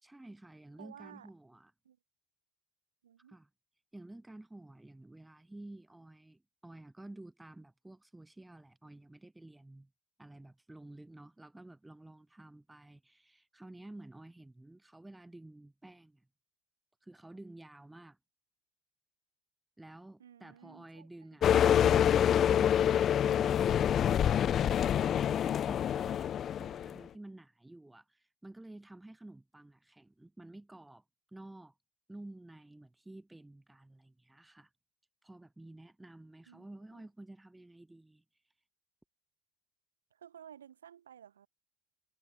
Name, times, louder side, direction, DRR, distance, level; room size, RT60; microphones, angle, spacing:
voice 1, 0.0-1.7 3.3-3.5 3.9-9.9 10.2-16.3 17.0-18.2 19.8-21.5 21.8-31.0 31.3-31.7 32.1-34.7 35.2-38.2, right 2 dB, 10° right, 1.8 m, -51 dB
voice 2, 0.8-1.3 1.8-2.0 3.0-3.4 20.2-21.1 36.5-37.1 40.1-41.5, right 9 dB, 75° right, 5.1 m, -54 dB
sound 1, 21.4-27.0, left 9 dB, 40° left, 0.3 m, -27 dB
figure-of-eight pair, 65°, 0 cm